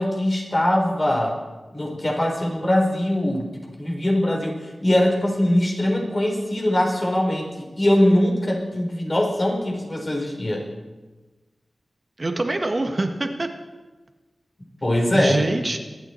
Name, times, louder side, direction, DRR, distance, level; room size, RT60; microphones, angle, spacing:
voice 1, 0.0-1.4 1.7-10.7 14.8-15.5, left 1 dB, 40° left, 0 dB, 4.2 m, -22 dB
voice 2, 12.2-13.5 15.1-15.8, right 2 dB, 45° right, 4 dB, 1.4 m, -24 dB
23.0 x 9.5 x 4.4 m, 1.2 s
cardioid pair, 45°, 0 cm